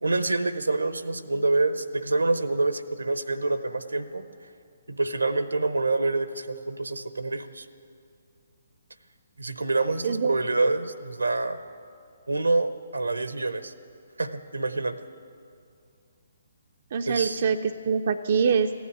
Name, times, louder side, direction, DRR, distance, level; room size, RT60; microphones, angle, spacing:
voice 1, 0.0-4.2 4.9-7.7 9.4-11.6 12.3-13.7 14.2-15.0 17.1-17.5, right 3 dB, 80° right, 12 dB, 0.8 m, -26 dB
voice 2, 10.0-10.3 16.9-18.7, right 6 dB, 50° right, 7 dB, 0.5 m, -24 dB
15.0 x 9.5 x 9.8 m, 2.4 s
figure-of-eight pair, 135°, 0 cm